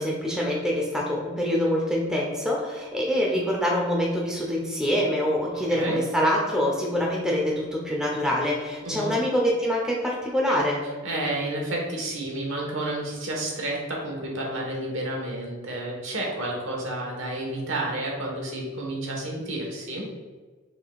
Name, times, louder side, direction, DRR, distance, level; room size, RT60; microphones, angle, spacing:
voice 1, 0.0-10.8, equal, 5° right, -2 dB, 0.6 m, -25 dB
voice 2, 5.5-6.0 8.8-9.1 11.0-20.1, right 1 dB, 70° right, -1 dB, 1.2 m, -30 dB
6.1 x 3.7 x 2.3 m, 1.4 s
head